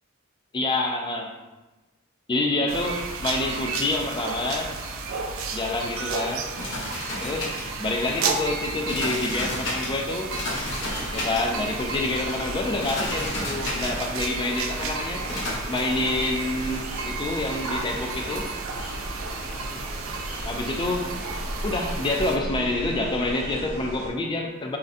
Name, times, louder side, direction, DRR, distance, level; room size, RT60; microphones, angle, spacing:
voice 1, 0.5-1.3 2.3-4.7 5.5-6.5 7.2-7.5 7.8-10.3 11.1-15.3 15.7-18.5 20.4-21.1 21.6-24.8, left 2 dB, 25° left, 2 dB, 0.3 m, -27 dB
sound 1, 2.7-22.4, right 4 dB, 70° right, 0.3 m, -33 dB
sound 2, 5.6-15.5, left 1 dB, 65° left, 0.9 m, -34 dB
sound 3, 10.5-24.1, equal, 35° right, 0.7 m, -37 dB
3.4 x 2.2 x 2.5 m, 1.1 s
head